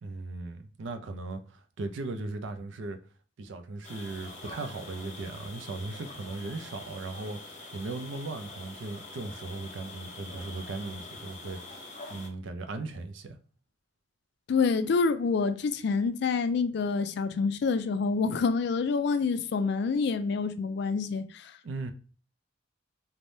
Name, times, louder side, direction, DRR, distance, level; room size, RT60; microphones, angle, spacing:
voice 1, 0.0-3.0 3.4-11.8 12.1-13.4 21.6-21.9, right 3 dB, 70° right, 0.5 m, -38 dB
sound 1, 3.8-12.3, left 2 dB, 35° left, 0.8 m, -45 dB
voice 2, 14.5-21.5, left 4 dB, 55° left, 0.3 m, -27 dB
3.3 x 2.1 x 2.6 m
head